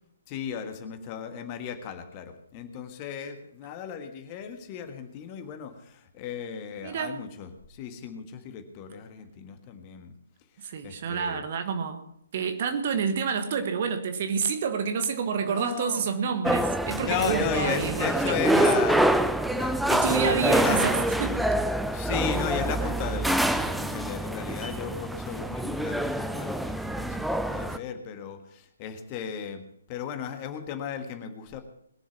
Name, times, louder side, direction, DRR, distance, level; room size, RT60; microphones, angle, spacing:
voice 1, 0.3-10.1 10.8-11.5 15.4-16.0 16.9-19.1 19.5-20.8 21.9-31.6, left 8 dB, 25° left, 7 dB, 1.5 m, -35 dB
voice 2, 6.8-7.2 10.6-12.0 12.3-18.6 19.9-21.4, right 6 dB, 40° right, 7 dB, 1.5 m, -28 dB
sound 1, 16.4-27.8, right 1 dB, ahead, 0.5 m, -26 dB
21.0 x 7.2 x 6.0 m, 0.75 s
figure-of-eight pair, 130°, 0 cm